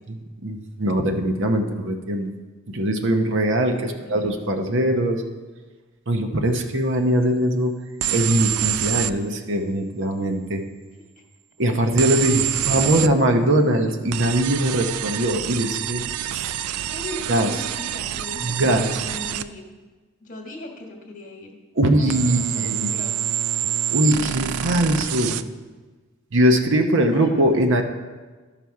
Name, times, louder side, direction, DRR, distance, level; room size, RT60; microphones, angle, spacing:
voice 1, 0.1-2.3 2.7-5.2 6.1-7.7 8.1-10.6 11.6-16.6 17.3-17.5 18.4-19.0 21.7-22.9 23.9-25.4 26.3-27.8, right 1 dB, 55° right, 5 dB, 0.8 m, -21 dB
voice 2, 3.7-4.3 11.6-13.1 16.1-16.3 16.9-19.7 20.2-21.6 21.9-23.2 27.1-27.4, left 2 dB, 35° left, 2 dB, 1.4 m, -39 dB
sound 1, 8.0-9.2 12.0-13.1 14.1-19.5 22.1-25.4, right 11 dB, 85° right, 0.4 m, -26 dB
12.0 x 5.8 x 4.7 m, 1.3 s
head